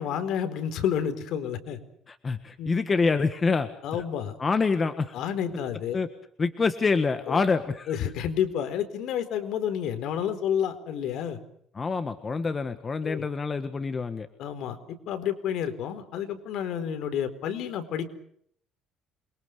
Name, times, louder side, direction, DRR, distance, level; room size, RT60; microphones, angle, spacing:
voice 1, 0.0-1.8 2.6-2.7 3.8-4.4 5.1-6.0 7.3-7.4 7.9-11.4 13.0-13.3 14.4-18.1, left 9 dB, 60° left, 10 dB, 4.4 m, -30 dB
voice 2, 2.1-3.7 4.4-5.1 5.9-6.1 6.4-8.0 11.7-14.3, left 4 dB, 20° left, 9 dB, 1.6 m, -26 dB
28.0 x 23.5 x 6.7 m, 0.66 s
cardioid pair, 160°, 0 cm